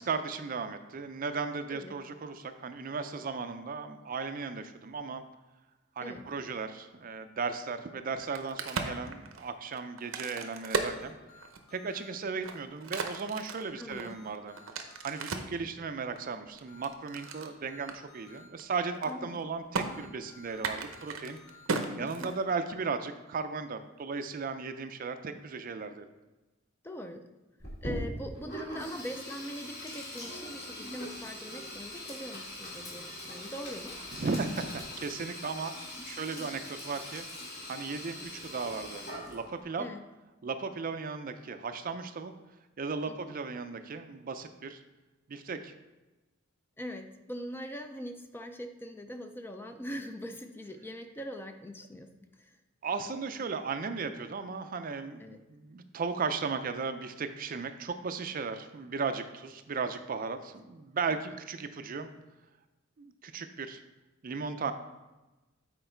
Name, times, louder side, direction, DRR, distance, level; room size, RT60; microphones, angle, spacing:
voice 1, 0.0-5.2 6.0-11.2 11.7-14.6 15.0-21.4 21.9-26.1 34.1-37.2 37.7-39.9 40.4-42.3 42.8-44.8 45.3-45.7 52.8-62.1 63.0-63.8 64.2-64.7, right 4 dB, 45° right, 9 dB, 0.4 m, -36 dB
Crack, 8.1-11.8 12.3-15.6 16.2-17.5 17.9-18.0 18.3-18.6 18.9-19.4 19.7-19.9 20.5-22.8, right 4 dB, 90° right, 0.7 m, -36 dB
sound 1, 10.3-12.1 13.5-15.3 16.7-18.5 19.9-21.7, left 4 dB, 80° left, 1.3 m, -56 dB
voice 2, 13.8-14.2 19.1-19.3 22.0-22.3 26.8-27.2 27.8-34.0 36.0-36.1 39.8-40.0 43.1-43.3 46.8-52.6 55.2-55.4, equal, 10° left, 6 dB, 0.4 m, -42 dB
Sink (filling or washing), 27.6-39.6, left 1 dB, 50° left, 2.5 m, -42 dB
7.8 x 4.5 x 4.4 m, 1.1 s
head